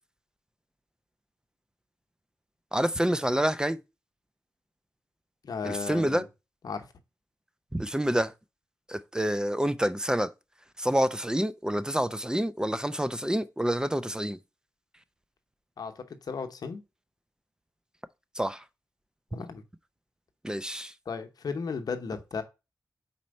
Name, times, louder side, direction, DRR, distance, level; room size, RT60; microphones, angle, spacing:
voice 1, 2.7-3.8 5.6-6.2 7.7-8.3 8.9-10.3 10.8-14.4 18.3-18.6 20.4-20.9, equal, 10° right, 0.5 m, -27 dB
voice 2, 5.4-6.2 6.6-6.9 15.8-16.8 19.3-19.6 21.1-22.4, left 5 dB, 75° left, 0.8 m, -35 dB
4.3 x 4.3 x 5.1 m
cardioid pair, 45°, 7 cm